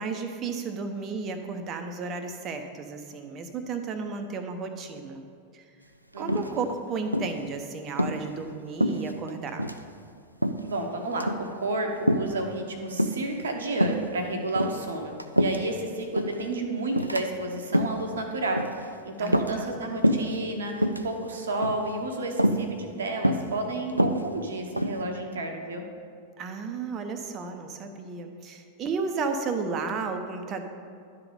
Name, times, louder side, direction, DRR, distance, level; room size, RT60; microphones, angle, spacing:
voice 1, 0.0-5.2 5.5-5.6 6.2-9.6 19.2-19.7 26.4-30.6, right 4 dB, 30° right, 6 dB, 0.8 m, -33 dB
voice 2, 6.1-6.7 10.6-25.8, right 2 dB, 70° right, 3 dB, 1.1 m, -31 dB
sound 1, 6.3-6.8 7.1-7.4 7.9-8.2 8.8-9.3 9.6-9.8 10.4-10.8 11.1-11.5 12.1-12.4 13.0-13.4 13.8-14.1 14.5-15.8 16.2-16.4 17.0-17.2 17.6-18.0 18.6-18.8 19.3-19.8 20.0-20.4 20.7-21.1 21.6-21.9 22.4-22.7 23.2-23.5 23.9-25.0, equal, 90° right, 0.4 m, -25 dB
11.5 x 3.9 x 6.9 m, 2.3 s
figure-of-eight pair, 90°, 0 cm